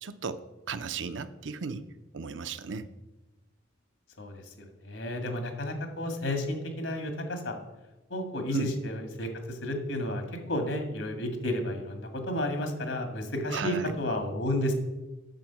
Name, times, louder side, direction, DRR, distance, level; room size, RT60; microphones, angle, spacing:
voice 1, 0.0-1.9 2.1-2.9 8.5-8.7 13.5-13.9, right 5 dB, 70° right, 11 dB, 0.6 m, -34 dB
voice 2, 4.2-7.5 8.1-14.7, left 1 dB, 80° left, 5 dB, 1.9 m, -32 dB
9.0 x 6.9 x 5.8 m, 1.1 s
head